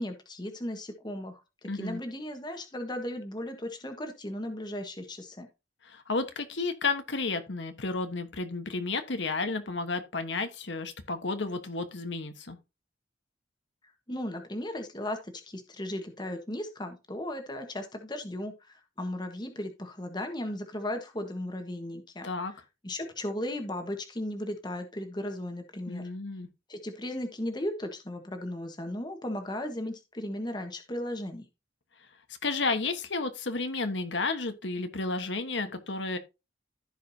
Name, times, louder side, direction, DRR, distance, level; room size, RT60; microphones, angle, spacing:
voice 1, 0.0-5.5 14.1-22.3 22.8-26.0 26.7-31.4, left 1 dB, 25° left, 1.3 m, -36 dB
voice 2, 1.6-2.0 5.8-12.6 22.2-22.5 25.9-26.5 32.4-36.2, left 3 dB, 80° left, 1.3 m, -32 dB
15.0 x 5.1 x 2.8 m
head